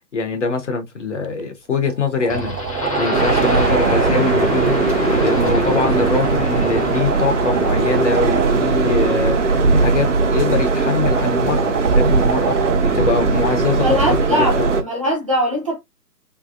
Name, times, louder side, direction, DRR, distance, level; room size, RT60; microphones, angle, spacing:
voice 1, 0.0-2.6 3.0-4.8 5.2-13.9 14.6-14.7, left 4 dB, 45° left, 1.0 m, -23 dB
sound 1, 1.2-1.4 1.8-4.1 5.8-8.5 10.0-12.8 15.1-15.2, right 8 dB, 75° right, 0.7 m, -28 dB
sound 2, 2.3-8.6, left 1 dB, 20° left, 0.8 m, -25 dB
sound 3, 3.1-14.8, right 4 dB, 45° right, 0.9 m, -19 dB
voice 2, 13.8-15.8, equal, 20° right, 0.7 m, -21 dB
3.4 x 3.1 x 2.5 m
figure-of-eight pair, 150°, 49 cm